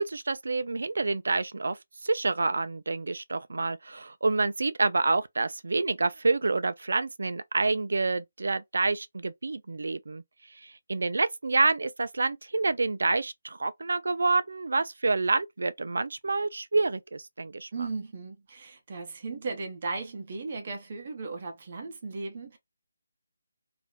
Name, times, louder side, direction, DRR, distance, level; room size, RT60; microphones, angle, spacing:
voice 1, 0.0-1.8 2.0-10.2 10.9-17.7, right 3 dB, 70° right, 0.3 m, -28 dB
voice 2, 17.7-22.6, right 4 dB, 40° right, 0.7 m, -36 dB
2.4 x 2.1 x 2.9 m
figure-of-eight pair, 165°, 0 cm